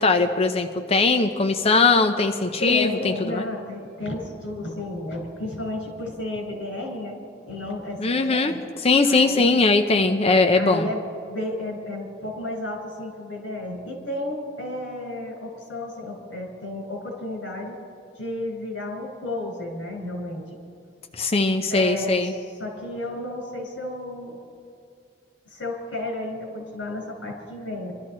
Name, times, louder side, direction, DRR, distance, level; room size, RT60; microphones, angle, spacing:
voice 1, 0.0-3.5 8.0-8.5 8.8-10.9 21.1-22.3, left 3 dB, 35° left, 6 dB, 0.6 m, -20 dB
voice 2, 2.6-8.6 9.0-9.6 10.5-11.0 11.3-17.7 18.2-20.4 21.7-24.4 25.5-27.9, left 1 dB, 85° left, 0 dB, 4.9 m, -32 dB
25.0 x 13.0 x 4.3 m, 2.5 s
head